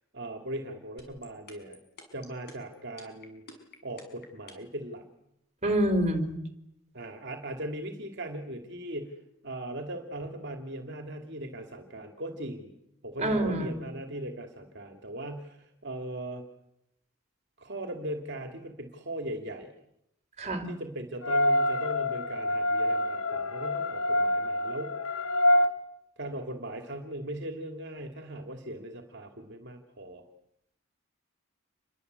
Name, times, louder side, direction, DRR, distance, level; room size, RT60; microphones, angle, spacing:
voice 1, 0.1-1.8 2.1-3.4 3.8-5.0 6.9-12.7 13.0-16.4 17.6-19.8 20.6-25.0 26.2-30.2, right 1 dB, 55° right, 4 dB, 2.8 m, -39 dB
sound 1, 1.0-4.8, left 4 dB, 50° left, 6.4 m, -48 dB
voice 2, 5.6-6.4 13.2-13.8 20.4-20.7, right 1 dB, 35° right, 7 dB, 4.3 m, -27 dB
sound 2, 21.2-25.7, left 1 dB, 80° left, 2.9 m, -26 dB
29.0 x 23.0 x 8.3 m, 0.81 s
head